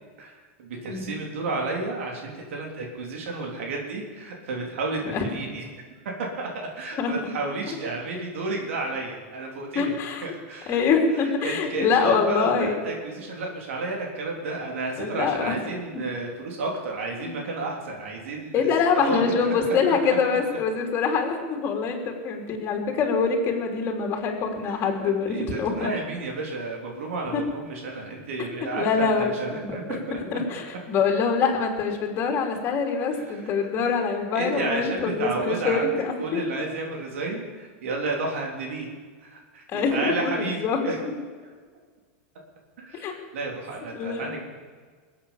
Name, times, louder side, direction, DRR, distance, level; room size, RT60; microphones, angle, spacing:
voice 1, 0.2-5.7 6.0-9.9 10.2-10.8 11.1-18.7 19.0-20.0 24.6-24.7 25.3-30.4 33.1-33.7 34.3-35.9 36.2-38.9 39.2-41.1 42.8-44.4, right 3 dB, 85° right, 0 dB, 3.4 m, -32 dB
voice 2, 9.7-10.2 10.7-12.8 15.0-15.6 17.2-17.3 18.5-25.9 27.3-27.4 28.4-28.5 28.8-29.3 29.5-36.6 39.7-40.9 42.9-43.1 43.9-44.3, left 5 dB, 30° left, 2 dB, 3.2 m, -25 dB
21.5 x 8.6 x 7.1 m, 1.5 s
supercardioid pair, 140°, 7 cm